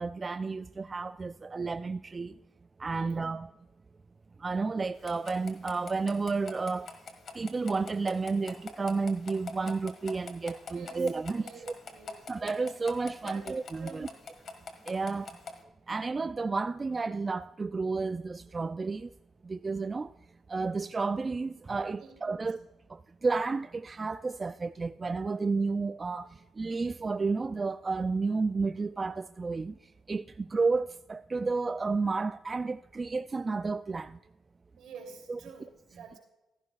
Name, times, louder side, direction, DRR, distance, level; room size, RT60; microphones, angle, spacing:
voice 1, 0.0-2.3 2.8-3.5 4.4-6.9 7.3-11.7 12.3-14.1 14.9-15.4 15.9-19.1 19.4-20.1 20.5-22.6 22.9-29.7 30.1-34.2 35.3-35.4, right 4 dB, 35° right, 0.3 m, -31 dB
sound 1, 5.0-15.6, left 4 dB, 60° left, 1.7 m, -46 dB
voice 2, 10.7-11.0 11.3-12.3 13.2-13.5 13.7-14.1 22.0-22.1 34.8-36.2, right 5 dB, 75° right, 3.0 m, -49 dB
14.0 x 12.0 x 2.4 m
supercardioid pair, 70°, 0 cm